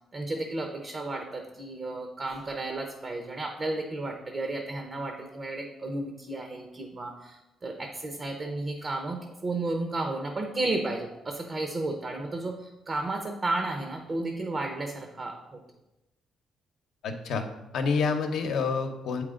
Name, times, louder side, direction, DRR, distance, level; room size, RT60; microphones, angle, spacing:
voice 1, 0.1-15.6, right 2 dB, 40° right, 4 dB, 0.8 m, -33 dB
voice 2, 17.0-17.4 17.7-19.2, left 5 dB, 75° left, 5 dB, 0.8 m, -28 dB
7.6 x 4.7 x 3.7 m, 0.97 s
cardioid pair, 90°, 0 cm